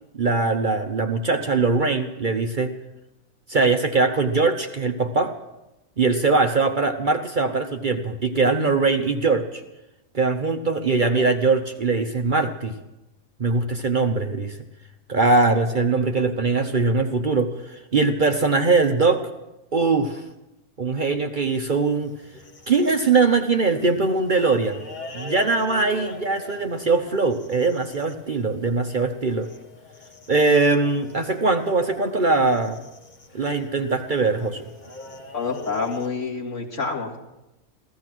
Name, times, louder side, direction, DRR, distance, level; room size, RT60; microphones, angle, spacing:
voice 1, 0.1-2.7 3.5-5.3 6.0-9.6 10.1-12.8 13.4-14.6 15.1-19.2 19.7-20.2 20.8-22.1 22.7-24.8 25.1-29.5 30.3-32.8 33.3-34.7, right 3 dB, 40° right, 6 dB, 0.9 m, -21 dB
sound 1, 21.4-36.1, left 4 dB, 35° left, 1.3 m, -42 dB
voice 2, 35.3-37.2, left 4 dB, 60° left, -1 dB, 2.4 m, -28 dB
15.5 x 14.5 x 6.0 m, 0.95 s
omnidirectional pair, 1.4 m